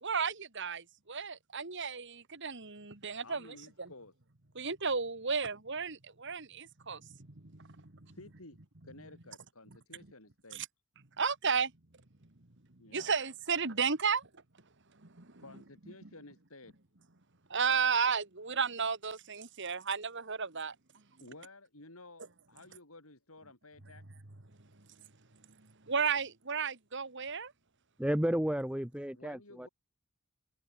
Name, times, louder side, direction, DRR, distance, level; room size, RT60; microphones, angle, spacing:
voice 1, 0.0-3.9 4.6-7.2 7.4-8.2 10.5-10.7 11.2-11.7 12.9-14.3 15.0-15.3 17.5-20.8 25.9-27.5, right 6 dB, 55° right, 2.1 m, -33 dB
voice 2, 3.2-4.1 7.6-7.7 8.1-8.6 8.8-10.6 12.8-13.1 15.4-16.7 21.2-24.0 29.1-29.7, left 2 dB, 75° left, 7.6 m, -53 dB
voice 3, 28.0-29.7, equal, 5° right, 0.9 m, -32 dB
head